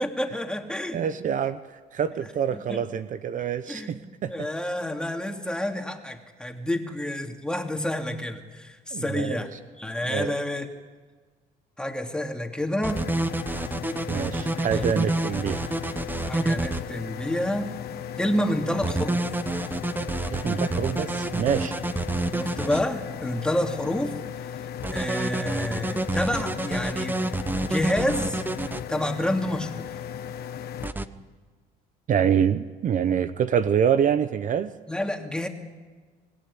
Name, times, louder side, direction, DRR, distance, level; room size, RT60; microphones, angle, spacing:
voice 1, 0.0-1.1 2.5-2.8 3.7-9.5 9.8-10.7 11.8-13.0 14.7-14.9 16.3-17.7 18.2-19.2 22.3-24.1 24.9-27.2 27.6-28.4 28.9-29.9 31.2-31.3 34.9-35.5, left 1 dB, 5° left, 3 dB, 2.7 m, -29 dB
voice 2, 0.9-4.3 8.9-9.4 10.0-10.4 14.1-15.9 20.3-21.8 32.1-34.7, right 8 dB, 50° right, 11 dB, 0.9 m, -26 dB
sound 1, 12.8-16.8 18.8-22.8 24.8-28.8 30.8-31.0, right 2 dB, 10° right, 1.0 m, -28 dB
sound 2, 12.9-30.9, left 9 dB, 65° left, 1.3 m, -37 dB
25.5 x 18.0 x 9.8 m, 1.4 s
cardioid pair, 110°, 17 cm